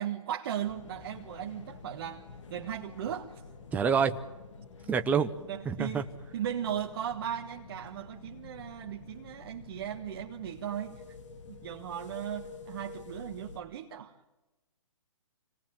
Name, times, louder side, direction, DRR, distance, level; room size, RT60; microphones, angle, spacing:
voice 1, 0.0-2.2 2.5-3.4 5.5-6.1 6.3-11.0 11.5-14.1, right 10 dB, 45° right, 1.6 m, -37 dB
sound 1, 0.6-13.6, left 4 dB, 65° left, 3.3 m, -49 dB
voice 2, 3.7-4.2 4.9-5.3 5.7-6.0, right 6 dB, 10° right, 0.8 m, -26 dB
27.0 x 19.5 x 9.1 m
hypercardioid pair, 145°, 17 cm